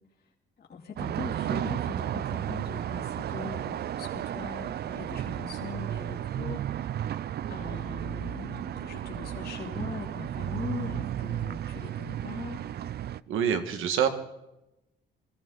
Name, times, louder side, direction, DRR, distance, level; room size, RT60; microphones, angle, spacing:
voice 1, 0.6-6.7 7.5-12.6, left 5 dB, 50° left, -1 dB, 3.0 m, -41 dB
sound 1, 1.0-13.2, right 11 dB, 55° right, 0.5 m, -33 dB
voice 2, 13.3-14.1, right 8 dB, 85° right, 7 dB, 1.8 m, -26 dB
23.5 x 14.5 x 4.0 m, 0.91 s
cardioid pair, 90°, 20 cm